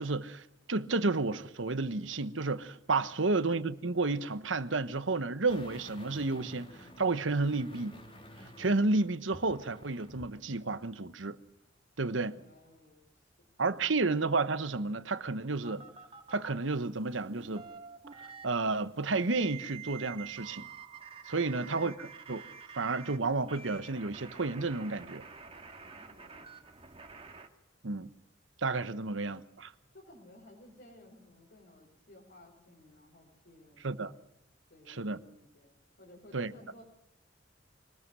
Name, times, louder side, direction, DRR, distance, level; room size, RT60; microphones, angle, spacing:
voice 1, 0.0-8.0 8.6-11.4 12.0-12.4 13.6-15.8 16.3-17.7 18.2-20.7 21.3-22.4 22.7-25.2 27.8-28.1 28.6-29.7 33.8-34.1 34.9-35.2 36.3-36.5, right 3 dB, 80° right, 1.2 m, -31 dB
voice 2, 3.1-3.4 12.0-13.5 13.9-14.1 25.8-26.7 28.9-29.1 29.9-34.2 34.7-36.8, left 1 dB, 60° left, 5.0 m, -57 dB
sound 1, 5.5-10.4 10.7-10.8, equal, 30° left, 3.7 m, -51 dB
sound 2, 15.6-16.5 17.2-18.6 19.3-23.2 23.5-27.5, right 6 dB, 30° right, 2.1 m, -48 dB
24.5 x 19.5 x 6.3 m
head